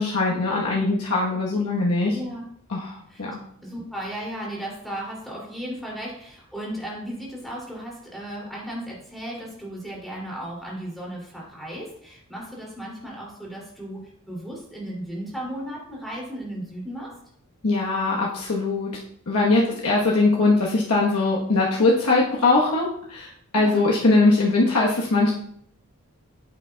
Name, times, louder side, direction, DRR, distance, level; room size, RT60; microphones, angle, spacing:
voice 1, 0.0-2.1 2.7-3.4 17.6-19.0 19.3-23.3 23.5-25.3, left 3 dB, 90° left, -3 dB, 1.2 m, -21 dB
voice 2, 2.1-2.4 3.1-3.2 3.6-17.1 19.6-19.8 23.5-23.8, right 1 dB, ahead, -4 dB, 2.7 m, -35 dB
9.4 x 7.8 x 2.3 m, 0.65 s
head